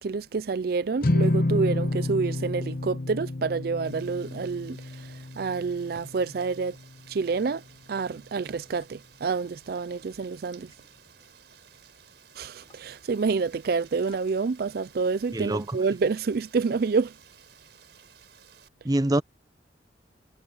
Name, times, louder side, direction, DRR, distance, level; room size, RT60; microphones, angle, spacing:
voice 1, 0.0-5.1 5.4-6.8 7.1-7.6 7.9-10.7 12.4-17.1, right 4 dB, 60° right, 0.4 m, -28 dB
sound 1, 1.0-7.4, left 1 dB, 55° left, 1.0 m, -30 dB
Rain, 3.8-18.7, right 8 dB, 75° right, 4.5 m, -55 dB
Liquid, 8.8-8.9 9.4-11.8 12.3-13.7 14.1-14.4, left 3 dB, 30° left, 7.4 m, -60 dB
voice 2, 15.3-15.8 18.8-19.2, right 1 dB, 20° right, 0.7 m, -25 dB
head